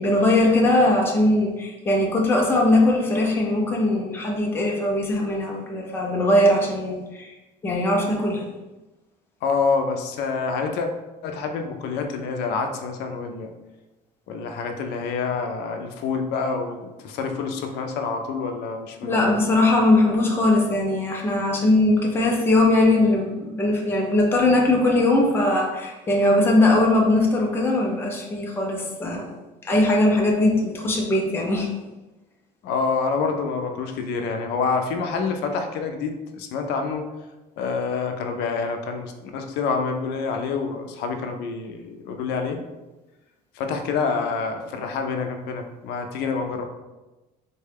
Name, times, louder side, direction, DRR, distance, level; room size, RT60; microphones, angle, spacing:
voice 1, 0.0-7.3 7.6-8.5 19.0-29.3 29.6-31.7, left 1 dB, 15° left, 0 dB, 0.4 m, -20 dB
voice 2, 9.4-10.9 11.2-13.5 14.3-19.4 32.6-37.1 37.6-42.6 43.5-46.6, left 4 dB, 80° left, 5 dB, 0.4 m, -27 dB
3.7 x 2.2 x 3.3 m, 1.1 s
cardioid pair, 170°, 17 cm